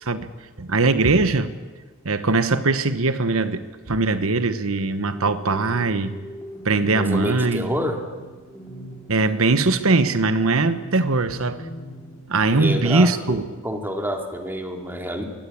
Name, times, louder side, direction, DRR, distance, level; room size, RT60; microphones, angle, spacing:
voice 1, 0.6-1.5 2.0-6.2 6.6-7.7 9.1-11.6 12.3-13.4, right 3 dB, 70° right, 11 dB, 1.2 m, -21 dB
sound 1, 4.8-12.2, right 1 dB, 15° left, 4.7 m, -40 dB
voice 2, 7.0-8.0 12.5-13.4 13.6-15.2, equal, 10° right, 3 dB, 2.8 m, -28 dB
23.5 x 18.5 x 8.7 m, 1.3 s
head